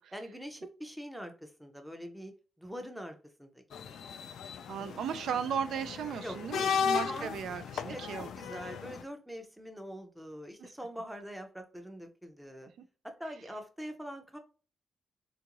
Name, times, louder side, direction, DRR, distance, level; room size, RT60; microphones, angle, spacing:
voice 1, 0.1-2.3 2.6-4.0 6.2-7.3 7.8-12.7 13.0-14.4, equal, 5° right, 0.5 m, -44 dB
sound 1, 3.7-9.0, left 7 dB, 80° left, 0.3 m, -35 dB
voice 2, 4.7-8.3 10.6-10.7, right 8 dB, 90° right, 0.3 m, -36 dB
3.7 x 2.4 x 2.9 m
wide cardioid pair, 170°, 0 cm